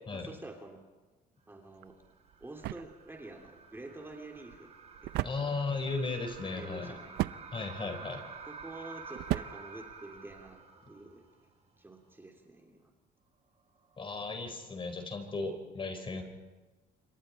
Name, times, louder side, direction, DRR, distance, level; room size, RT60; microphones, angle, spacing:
voice 1, 0.1-0.8 1.5-1.9 2.4-4.7 5.0-5.6 6.4-7.2 8.5-10.6 10.9-11.2 11.8-12.9, right 2 dB, 15° right, 2 dB, 3.0 m, -48 dB
sound 1, 1.8-10.6, right 16 dB, 80° right, 0.6 m, -40 dB
sound 2, 1.9-11.5 11.8-11.9 14.0-14.6, right 4 dB, 40° right, 3.8 m, -50 dB
voice 2, 5.2-7.0 7.5-8.2 14.0-16.2, left 3 dB, 30° left, 6 dB, 4.6 m, -36 dB
27.5 x 24.5 x 4.5 m, 1.2 s
cardioid pair, 110°, 17 cm